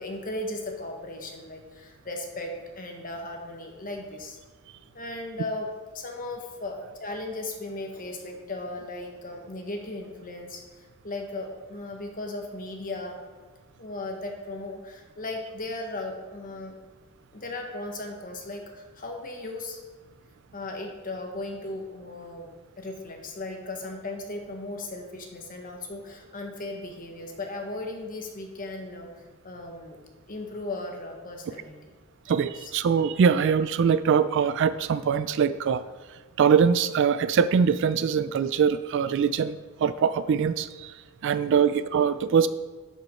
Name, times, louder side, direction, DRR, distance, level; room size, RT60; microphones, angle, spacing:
voice 1, 0.0-4.4 4.9-5.7 5.9-13.2 13.8-16.7 17.3-19.8 20.5-22.5 22.8-30.0 30.3-31.8 32.3-32.7 41.4-41.7, left 2 dB, 40° left, 2 dB, 1.2 m, -37 dB
voice 2, 32.3-35.8 36.4-40.9 41.2-42.5, right 6 dB, 55° right, 13 dB, 0.3 m, -23 dB
11.5 x 5.3 x 4.3 m, 1.4 s
head